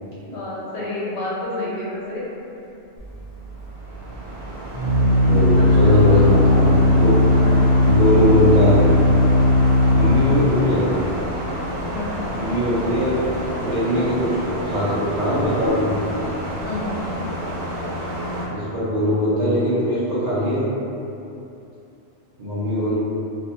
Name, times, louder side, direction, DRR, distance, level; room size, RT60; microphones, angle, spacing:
voice 1, 0.3-2.3 5.5-6.8 7.3-7.7 11.9-12.2 16.6-17.0, left 2 dB, 75° left, -7 dB, 0.9 m, -30 dB
Organ, 3.0-13.5, left 2 dB, 45° left, 0.5 m, -18 dB
sound 1, 3.4-18.5, equal, 85° right, 0.9 m, -29 dB
voice 2, 5.3-7.1 7.8-8.9 9.9-11.0 12.3-13.2 13.6-16.0 18.5-20.7 22.4-22.9, equal, 45° right, -12 dB, 0.6 m, -21 dB
2.4 x 2.3 x 2.7 m, 2.8 s
omnidirectional pair, 1.2 m